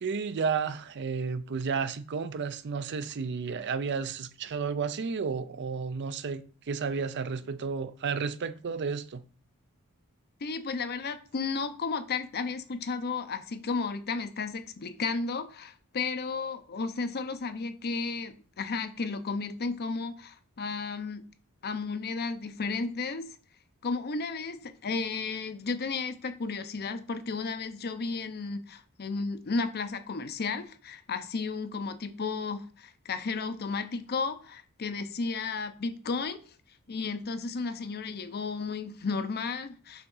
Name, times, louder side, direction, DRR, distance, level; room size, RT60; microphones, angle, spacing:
voice 1, 0.0-9.3, right 5 dB, 50° right, 0.5 m, -32 dB
voice 2, 10.4-21.2 21.6-23.4 23.8-36.5 36.9-40.1, left 4 dB, 45° left, 0.6 m, -33 dB
5.7 x 3.6 x 5.4 m
head